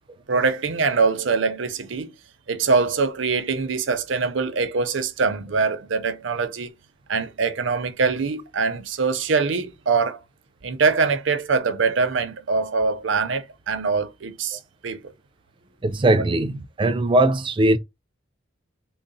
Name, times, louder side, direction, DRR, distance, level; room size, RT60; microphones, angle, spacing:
voice 1, 0.3-2.1 2.5-6.7 7.1-10.2 10.6-15.1, right 4 dB, 65° right, 0.6 m, -23 dB
voice 2, 15.8-17.8, right 1 dB, 25° right, 0.4 m, -20 dB
3.8 x 2.1 x 3.9 m
head